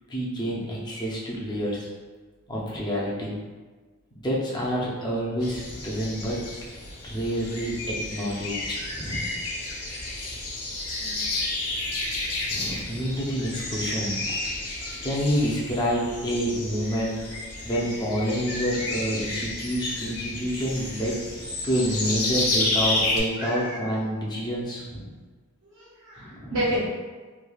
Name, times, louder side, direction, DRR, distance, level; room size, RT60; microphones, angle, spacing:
voice 1, 0.1-1.9 2.5-3.3 4.2-6.4 7.0-9.2 11.0-11.2 12.5-14.3 15.0-17.2 17.6-21.2 21.6-25.1 26.2-26.8, equal, 20° left, -5 dB, 0.5 m, -28 dB
sound 1, 5.4-23.2, left 2 dB, 90° left, 0.7 m, -31 dB
voice 2, 23.4-23.8 25.6-26.8, right 1 dB, 65° right, -8 dB, 0.6 m, -30 dB
3.2 x 2.3 x 2.3 m, 1.4 s
head